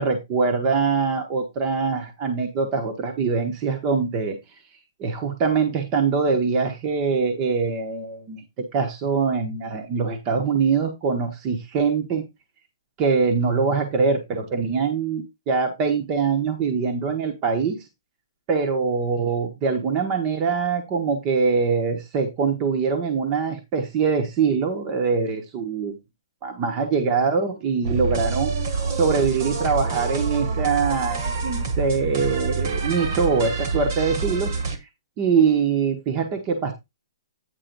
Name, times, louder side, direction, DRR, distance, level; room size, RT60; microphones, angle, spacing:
voice 1, 0.0-4.4 5.0-12.2 13.0-17.8 18.5-26.0 26.4-28.5 28.9-34.5 34.8-34.9 35.2-36.7, right 5 dB, 20° right, 5 dB, 1.1 m, -23 dB
sound 1, 27.8-34.8, right 4 dB, 45° right, 1.5 m, -27 dB
9.2 x 3.7 x 5.3 m, 0.21 s
hypercardioid pair, 175°, 2 cm